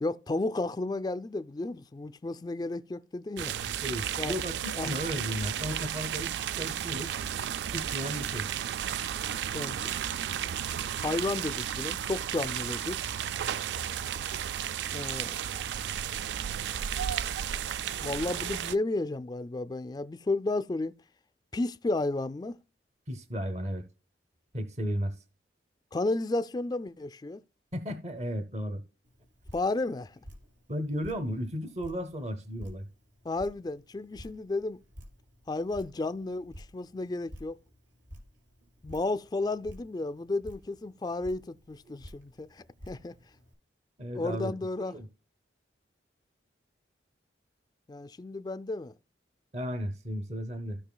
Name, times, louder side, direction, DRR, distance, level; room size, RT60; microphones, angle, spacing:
voice 1, 0.0-3.5 4.2-4.4 4.7-4.9 9.5-9.9 11.0-13.0 14.9-15.4 18.0-20.9 21.5-22.6 25.9-27.4 29.5-30.2 33.2-34.8 35.5-37.6 38.8-43.1 44.1-45.0 47.9-48.9, left 2 dB, 20° left, 0.3 m, -32 dB
sound 1, 3.4-18.8, right 9 dB, 70° right, 0.3 m, -33 dB
voice 2, 3.7-7.2 7.7-8.5 23.1-23.9 24.5-25.2 27.7-28.8 30.7-32.9 44.0-44.5 44.8-45.1 49.5-50.8, equal, 35° right, 0.7 m, -34 dB
Drip, 29.0-43.5, equal, 90° right, 3.9 m, -52 dB
15.5 x 5.5 x 2.2 m
head